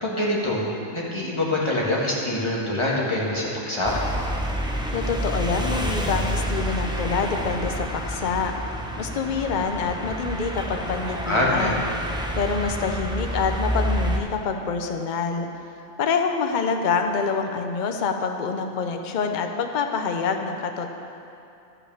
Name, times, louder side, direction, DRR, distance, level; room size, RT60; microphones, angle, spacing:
voice 1, 0.0-0.7 0.9-3.9 11.2-11.8, left 1 dB, 20° left, -5 dB, 1.9 m, -24 dB
sound 1, 3.8-14.2, equal, 5° right, 0.5 m, -28 dB
voice 2, 4.9-8.5 9.0-11.9 12.3-15.5 16.0-20.9, left 5 dB, 45° left, 5 dB, 0.7 m, -26 dB
12.0 x 5.9 x 7.1 m, 2.8 s
omnidirectional pair, 1.4 m